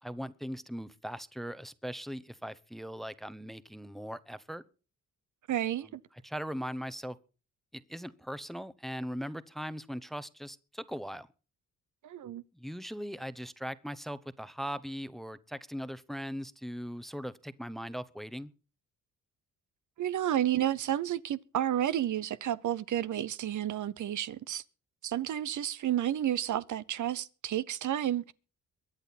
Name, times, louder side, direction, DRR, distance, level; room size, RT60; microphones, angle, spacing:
voice 1, 0.0-4.6 5.8-7.2 7.7-11.3 12.5-18.5, equal, ahead, 0.9 m, -40 dB
voice 2, 5.5-6.0 12.0-12.4 20.0-24.6 25.0-28.3, right 11 dB, 65° right, 0.8 m, -31 dB
23.0 x 8.8 x 4.2 m
cardioid pair, 95°, 32 cm